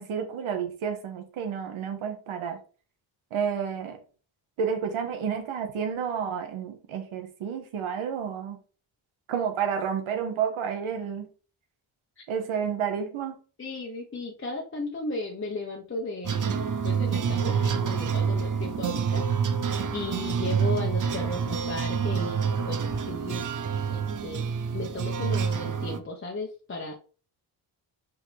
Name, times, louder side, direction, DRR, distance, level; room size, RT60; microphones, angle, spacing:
voice 1, 0.0-2.6 3.3-4.0 4.6-8.6 9.3-11.3 12.3-13.3, right 7 dB, 85° right, 5 dB, 1.5 m, -30 dB
voice 2, 13.6-16.6 16.8-19.2 19.9-23.5 23.7-24.4 24.7-26.9, left 2 dB, 25° left, -1 dB, 1.1 m, -35 dB
sound 1, 16.2-26.0, right 6 dB, 40° right, 0.8 m, -27 dB
6.0 x 5.2 x 3.4 m, 0.38 s
cardioid pair, 110°, 48 cm